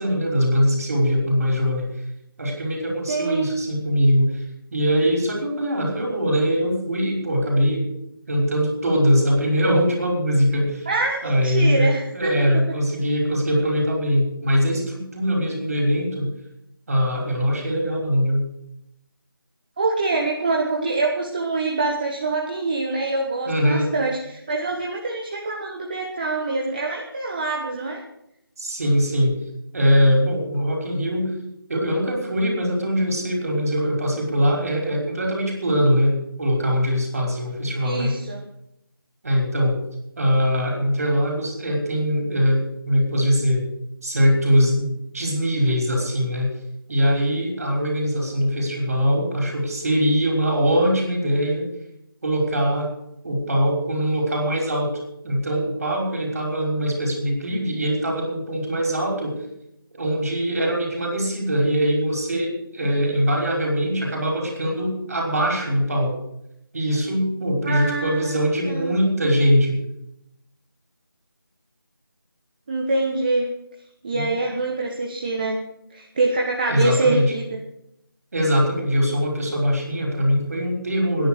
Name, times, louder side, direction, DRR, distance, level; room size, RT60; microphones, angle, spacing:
voice 1, 0.0-1.9 2.4-4.4 4.7-7.9 8.3-10.9 11.2-16.3 16.9-18.4 23.5-23.9 28.6-29.4 29.7-31.3 31.7-38.1 39.2-39.8 40.2-43.6 44.0-46.5 46.9-51.7 52.2-52.9 53.2-55.0 55.2-59.4 59.9-66.2 66.7-69.8 74.1-74.3 76.7-77.3 78.3-81.3, equal, 40° right, 1 dB, 5.6 m, -22 dB
voice 2, 3.1-3.5 10.9-12.5 19.8-28.0 37.8-38.4 67.6-68.9 72.7-73.5 74.0-75.6 75.9-77.6, right 3 dB, 25° right, 0 dB, 1.4 m, -25 dB
17.0 x 10.5 x 6.7 m, 0.82 s
figure-of-eight pair, 165°, 12 cm